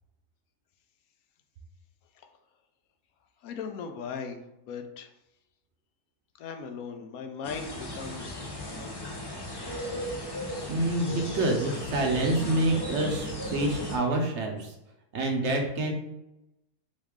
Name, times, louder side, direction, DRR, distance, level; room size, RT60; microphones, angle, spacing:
voice 1, 3.4-5.1 6.4-9.1, left 6 dB, 80° left, 5 dB, 1.0 m, -39 dB
sound 1, 7.4-14.0, left 1 dB, 40° left, 0.3 m, -36 dB
voice 2, 10.7-14.7 15.1-15.9, right 2 dB, 60° right, 2 dB, 0.8 m, -27 dB
3.6 x 3.1 x 3.5 m, 0.89 s
omnidirectional pair, 1.5 m